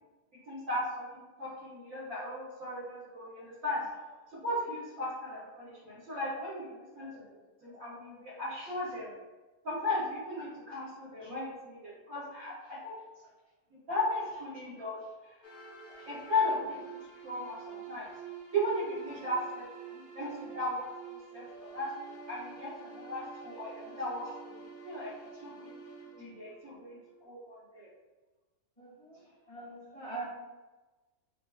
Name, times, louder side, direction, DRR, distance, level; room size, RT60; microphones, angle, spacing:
voice 1, 0.5-9.1 9.6-13.0 13.9-15.5 16.0-18.1 18.5-24.5 24.8-25.7 26.1-27.9, left 1 dB, 75° right, -8 dB, 1.4 m, -37 dB
sound 1, 15.4-27.2, right 6 dB, 65° left, 0.5 m, -48 dB
voice 2, 28.8-29.2 29.5-30.2, right 3 dB, 35° left, -9 dB, 1.6 m, -43 dB
3.9 x 2.5 x 2.3 m, 1.2 s
omnidirectional pair, 1.5 m